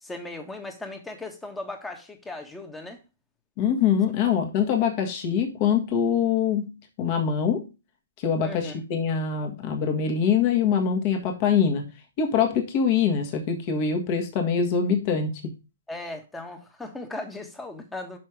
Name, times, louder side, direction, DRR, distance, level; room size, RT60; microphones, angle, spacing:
voice 1, 0.0-3.0 4.2-4.3 8.4-8.8 15.9-18.2, left 2 dB, 5° left, 1.3 m, -37 dB
voice 2, 3.6-7.7 8.2-11.8 12.2-15.3, left 7 dB, 35° left, 1.6 m, -24 dB
6.1 x 5.7 x 4.9 m
figure-of-eight pair, 120°, 0 cm